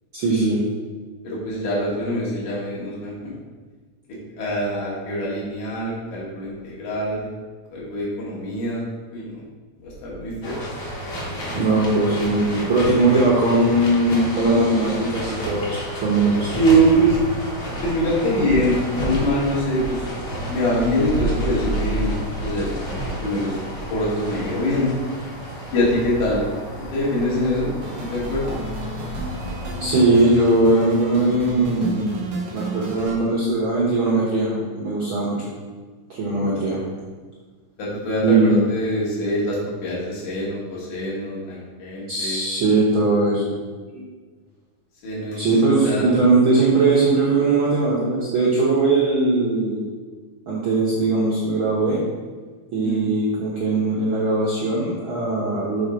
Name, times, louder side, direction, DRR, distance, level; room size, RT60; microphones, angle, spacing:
voice 1, 0.1-0.6 11.5-16.5 29.8-32.2 32.5-35.5 36.1-36.8 38.2-38.6 42.1-43.5 43.9-44.0 45.4-49.9 50.5-52.0 52.7-55.9, right 2 dB, 65° right, -6 dB, 1.3 m, -20 dB
voice 2, 1.2-3.3 4.4-7.3 7.7-8.8 9.1-9.3 9.8-10.6 16.5-17.2 17.8-20.1 20.5-22.1 22.4-23.6 23.9-24.9 25.7-26.4 26.9-27.7 28.1-28.6 37.8-42.4 45.0-45.5 45.8-46.0 52.8-53.1, equal, 75° left, -6 dB, 3.0 m, -23 dB
sound 1, 10.4-30.0, equal, 50° left, 1.2 m, -31 dB
sound 2, 27.8-33.1, right 1 dB, 85° right, 0.9 m, -32 dB
6.3 x 3.6 x 5.0 m, 1.4 s
omnidirectional pair, 3.6 m